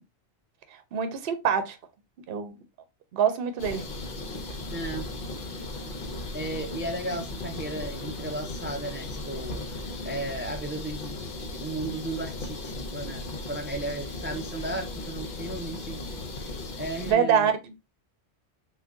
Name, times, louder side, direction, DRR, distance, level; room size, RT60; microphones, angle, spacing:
voice 1, 0.9-1.8 2.3-2.5 3.1-3.9 17.1-17.5, right 8 dB, 60° right, 0.8 m, -24 dB
sound 1, 3.6-17.1, left 2 dB, 55° left, 0.8 m, -36 dB
voice 2, 4.7-5.1 6.3-16.0 16.8-17.5, right 1 dB, 20° right, 0.3 m, -35 dB
3.6 x 2.2 x 3.6 m
omnidirectional pair, 1.1 m